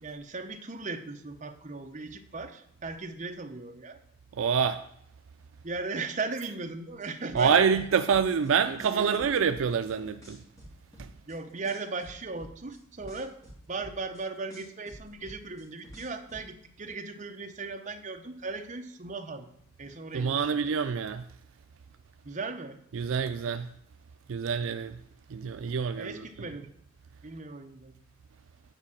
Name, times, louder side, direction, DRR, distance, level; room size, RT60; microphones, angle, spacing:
voice 1, 0.0-4.0 5.6-7.9 8.8-9.3 11.3-13.3 13.7-19.5 19.8-20.6 22.2-22.8 26.0-26.7 27.2-28.0, right 3 dB, 35° right, 0.8 m, -37 dB
voice 2, 4.4-4.8 7.3-10.4 11.0-11.1 20.1-21.3 22.9-23.7 24.3-25.0 25.3-26.2, right 6 dB, 65° right, 0.4 m, -26 dB
sound 1, 7.0-8.5 8.8-9.9 10.2-11.3 11.6-14.2 14.5-16.4, equal, 15° left, 2.5 m, -48 dB
8.9 x 4.7 x 7.2 m
head